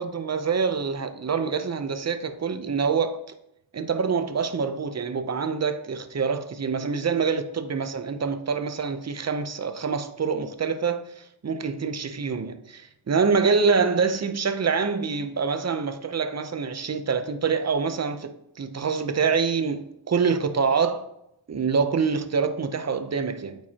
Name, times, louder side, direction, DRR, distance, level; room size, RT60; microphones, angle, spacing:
voice 1, 0.0-3.2 3.7-18.3 18.6-21.1 21.5-23.6, right 5 dB, 35° right, 0.6 m, -26 dB
8.7 x 4.6 x 2.8 m
wide cardioid pair, 85°, 48 cm